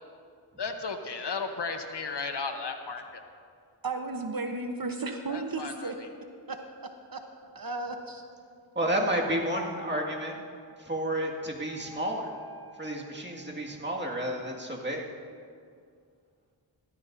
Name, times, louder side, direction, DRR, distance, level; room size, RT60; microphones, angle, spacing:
voice 1, 0.6-3.2 5.3-5.9, left 4 dB, 60° left, 6 dB, 1.0 m, -34 dB
voice 2, 3.8-6.0 6.5-6.6 7.1-7.2 7.5-8.2, right 3 dB, 50° right, 5 dB, 1.0 m, -34 dB
voice 3, 8.8-10.4 10.8-12.3 12.8-15.1, right 1 dB, 25° right, -2 dB, 2.0 m, -31 dB
Wind instrument woodwind instrument, 8.8-13.4, right 2 dB, 85° right, 1.7 m, -49 dB
16.5 x 13.0 x 2.7 m, 2.2 s
cardioid pair, 45°, 46 cm